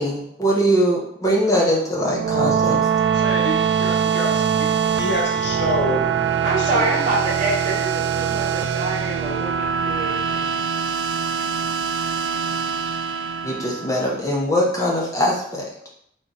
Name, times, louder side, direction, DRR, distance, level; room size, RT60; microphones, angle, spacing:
voice 1, 0.0-2.8 13.4-15.7, equal, 15° left, -3 dB, 0.7 m, -21 dB
sound 1, 1.9-14.3, right 7 dB, 60° right, 0.3 m, -23 dB
voice 2, 3.0-6.0 6.6-7.0, left 1 dB, 65° left, -2 dB, 1.0 m, -28 dB
voice 3, 6.4-10.6, right 2 dB, 40° right, -5 dB, 1.2 m, -26 dB
3.7 x 2.9 x 3.9 m, 0.70 s
head